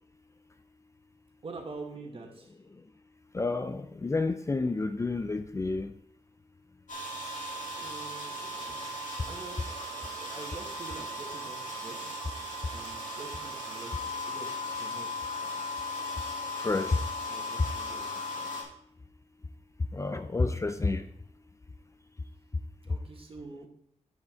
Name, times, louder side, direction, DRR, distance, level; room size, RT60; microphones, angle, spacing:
voice 1, 1.4-2.6 7.2-7.4 7.7-8.9 9.3-15.1 16.7-16.9 17.3-18.2 22.8-23.7, right 3 dB, 45° right, 2 dB, 1.8 m, -46 dB
voice 2, 3.3-5.9 16.6-17.0 19.9-21.0, left 3 dB, 25° left, 9 dB, 0.5 m, -29 dB
sound 1, 6.9-18.6, left 1 dB, 75° left, 2.4 m, -37 dB
9.3 x 5.9 x 4.5 m, 0.72 s
wide cardioid pair, 100°, 13 cm